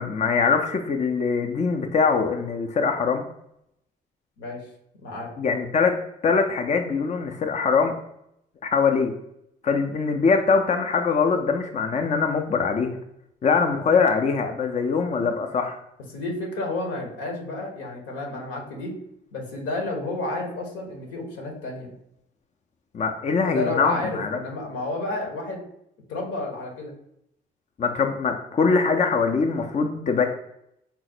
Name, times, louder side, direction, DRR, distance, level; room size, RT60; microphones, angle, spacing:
voice 1, 0.0-3.2 5.4-6.0 6.2-7.9 8.6-9.1 9.6-13.0 13.4-15.8 22.9-24.4 27.8-30.3, left 5 dB, 35° left, 4 dB, 0.5 m, -22 dB
voice 2, 5.0-5.3 16.1-18.9 19.3-21.9 23.4-25.6 26.1-26.9, left 2 dB, 80° left, 1 dB, 1.0 m, -31 dB
4.1 x 2.0 x 4.1 m, 0.77 s
hypercardioid pair, 50°, 21 cm